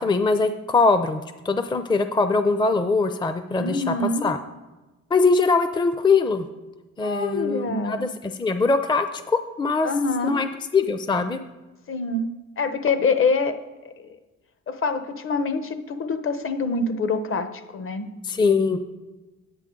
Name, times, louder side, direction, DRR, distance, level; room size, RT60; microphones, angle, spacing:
voice 1, 0.0-4.4 5.1-6.5 7.0-9.9 10.2-11.4 18.2-18.8, left 4 dB, 15° left, 9 dB, 0.5 m, -22 dB
voice 2, 3.6-4.3 7.0-8.1 9.8-10.4 11.9-12.3 12.6-13.6 13.8-14.2 14.7-18.1, left 3 dB, 45° left, 9 dB, 1.0 m, -25 dB
9.9 x 9.0 x 3.8 m, 1.2 s
cardioid pair, 90°, 30 cm